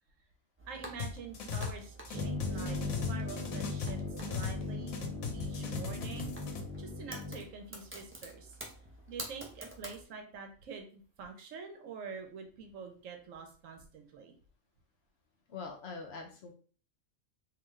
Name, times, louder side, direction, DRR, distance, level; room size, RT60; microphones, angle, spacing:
sound 1, 0.6-10.0, right 1 dB, 20° right, 0.3 m, -49 dB
voice 1, 0.7-5.0 5.3-6.3 6.8-8.6 9.1-14.3, right 5 dB, 70° right, 4 dB, 1.1 m, -46 dB
sound 2, 1.0-1.8 2.0-4.6 4.9-6.6, left 6 dB, 80° left, 1.2 m, -38 dB
sound 3, 2.1-7.4, left 3 dB, 45° right, 1.1 m, -38 dB
voice 2, 15.5-16.5, left 4 dB, 60° left, 2 dB, 0.8 m, -43 dB
3.7 x 2.7 x 3.1 m, 0.42 s
omnidirectional pair, 1.4 m